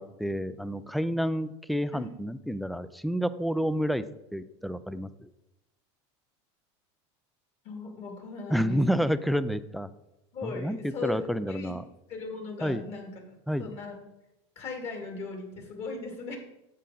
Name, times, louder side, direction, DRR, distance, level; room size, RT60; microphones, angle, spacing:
voice 1, 0.0-4.1 4.3-5.3 8.5-9.9 10.4-10.8 11.0-11.8 12.6-12.8 13.5-13.7, equal, ahead, 15 dB, 0.3 m, -29 dB
voice 2, 7.6-9.1 10.3-11.7 12.1-14.0 14.6-16.4, left 4 dB, 45° left, 2 dB, 2.5 m, -38 dB
9.9 x 7.4 x 3.9 m, 0.90 s
supercardioid pair, 125°, 15 cm